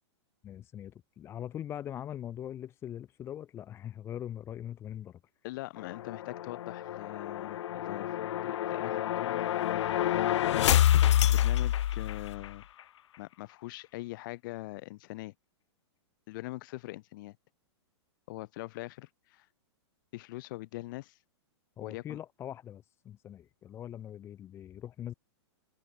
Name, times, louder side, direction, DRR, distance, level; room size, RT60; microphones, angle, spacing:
voice 1, 0.4-5.2 21.8-25.1, left 10 dB, 15° left, 0.9 m, -42 dB
voice 2, 5.4-10.7 11.1-12.7 13.2-15.3 16.3-17.4 18.3-19.5 20.1-21.2 21.8-22.2, left 20 dB, 45° left, 4.7 m, -42 dB
sound 1, 5.8-12.5, left 12 dB, 80° left, 0.5 m, -28 dB
hypercardioid pair, 160°, 15 cm